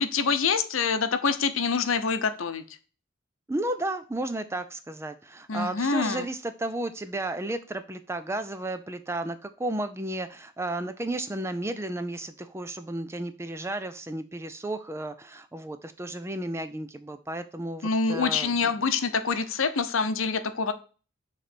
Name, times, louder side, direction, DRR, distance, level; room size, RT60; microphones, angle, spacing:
voice 1, 0.0-2.6 5.5-6.3 17.8-20.7, left 5 dB, 75° left, 10 dB, 0.7 m, -26 dB
voice 2, 3.5-18.7, right 1 dB, 10° right, 10 dB, 0.4 m, -33 dB
6.6 x 3.2 x 6.0 m, 0.36 s
head